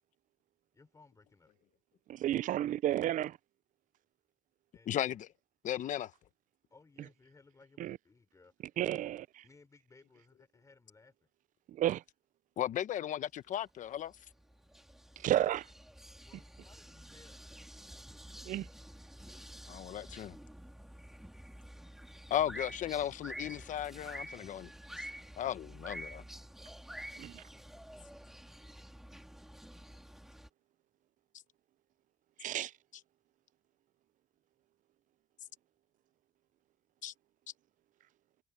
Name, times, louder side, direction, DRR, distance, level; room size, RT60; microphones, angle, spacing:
voice 1, 0.7-1.5 4.7-5.2 6.7-9.1 9.4-11.1 16.2-17.4, left 3 dB, 25° left, 3.7 m, -62 dB
voice 2, 2.1-3.4 7.8-8.0 8.8-9.2 11.7-12.0 15.2-15.7 18.5-18.7 27.2-27.4 32.4-32.7, right 13 dB, 70° right, 0.5 m, -32 dB
voice 3, 4.9-5.3 5.6-6.1 12.6-14.1 19.7-20.3 22.3-24.7 25.4-26.2 37.0-37.1, left 11 dB, 65° left, 0.9 m, -35 dB
sound 1, 13.9-30.5, equal, 5° right, 2.8 m, -49 dB
cardioid pair, 135°, 14 cm